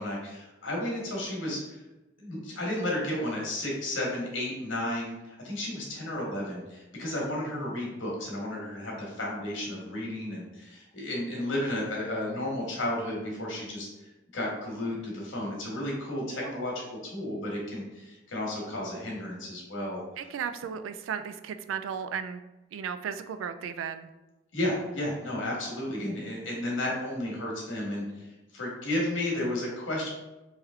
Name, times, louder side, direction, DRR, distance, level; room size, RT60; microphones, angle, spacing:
voice 1, 0.0-1.8 2.2-13.9 14.3-20.0 24.5-28.2 28.5-30.1, left 1 dB, 80° left, -2 dB, 1.3 m, -33 dB
voice 2, 16.2-16.5 20.2-22.4 22.7-24.1, right 7 dB, 85° right, 10 dB, 0.3 m, -35 dB
3.1 x 3.1 x 3.5 m, 1.0 s
head